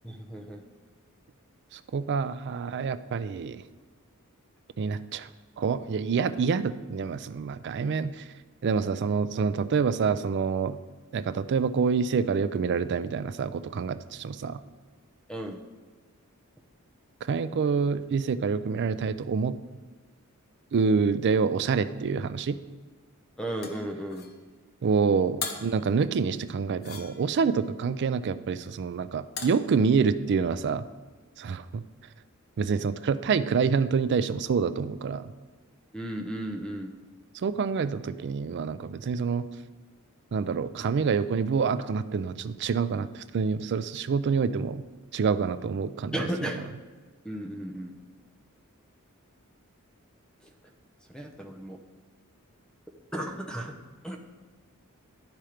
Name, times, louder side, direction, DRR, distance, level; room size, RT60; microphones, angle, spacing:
voice 1, 0.0-0.6 15.3-15.6 23.4-24.3 35.9-36.9 46.1-46.7 47.2-47.9 50.4-50.5 51.1-51.8 53.1-53.8 54.0-54.2, right 1 dB, 5° left, 3 dB, 0.7 m, -34 dB
voice 2, 1.7-3.6 4.8-5.3 5.6-8.3 8.6-10.8 11.1-14.6 17.2-19.6 20.7-22.6 24.8-30.8 31.4-31.8 32.6-35.3 37.3-39.5 40.3-44.9 45.1-46.1, right 5 dB, 55° right, 13 dB, 0.4 m, -27 dB
sound 1, 23.6-24.4 25.4-25.8 26.8-27.5 29.4-29.7, left 6 dB, 45° left, 0.8 m, -38 dB
11.5 x 4.4 x 5.0 m, 1.3 s
head